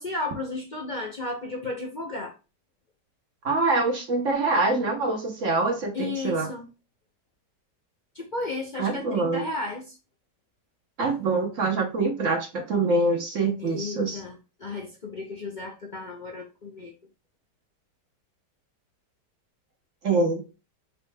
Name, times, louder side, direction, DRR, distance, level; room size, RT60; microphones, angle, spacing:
voice 1, 0.0-2.3 5.9-6.7 8.1-10.0 13.6-16.9, left 2 dB, 55° left, 1 dB, 0.5 m, -34 dB
voice 2, 3.4-6.5 8.8-9.4 11.0-14.2 20.0-20.4, right 3 dB, 50° right, 2 dB, 1.2 m, -25 dB
5.1 x 4.3 x 2.2 m, 0.29 s
omnidirectional pair, 1.9 m